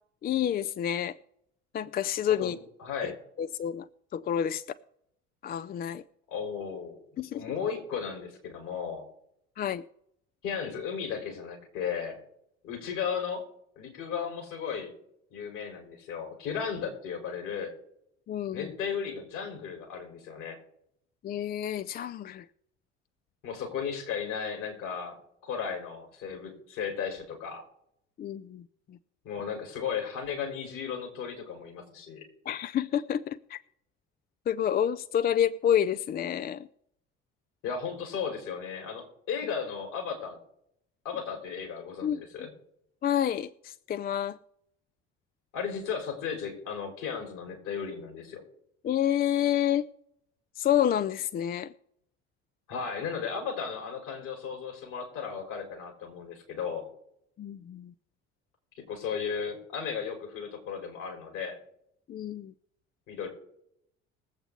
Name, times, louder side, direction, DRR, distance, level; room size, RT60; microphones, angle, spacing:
voice 1, 0.2-1.2 1.7-2.6 3.0-3.1 3.4-3.9 4.1-4.6 5.4-6.0 7.2-7.4 9.6-9.8 18.3-18.7 21.2-22.4 28.2-28.6 32.5-33.6 34.5-36.7 42.0-42.2 43.0-44.4 48.8-49.9 50.6-51.7 57.4-57.9 62.1-62.5, left 10 dB, 25° left, 15 dB, 0.4 m, -28 dB
voice 2, 2.4-3.2 6.3-7.0 7.3-9.0 10.4-12.2 12.6-13.4 13.8-14.9 15.3-17.7 18.5-20.6 23.4-27.7 29.2-32.2 37.6-40.4 41.0-42.5 45.5-48.4 52.7-56.9 58.8-61.6 63.1-63.3, left 6 dB, 60° left, 2 dB, 4.0 m, -35 dB
21.0 x 8.0 x 3.6 m, 0.74 s
figure-of-eight pair, 55°, 37 cm